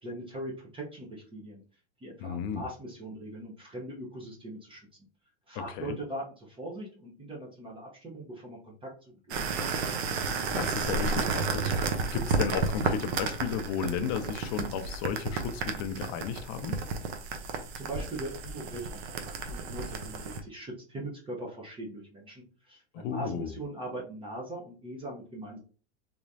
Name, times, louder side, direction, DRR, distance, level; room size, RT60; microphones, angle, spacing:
voice 1, 0.0-1.6 2.0-4.9 5.5-9.8 17.3-25.6, right 1 dB, 15° right, 0.9 m, -41 dB
voice 2, 2.2-2.6 5.5-5.9 10.5-16.8 22.9-23.5, left 7 dB, 40° left, 0.6 m, -34 dB
sound 1, 9.3-20.4, right 4 dB, 65° right, 0.9 m, -32 dB
3.6 x 3.1 x 2.7 m
supercardioid pair, 135°, 34 cm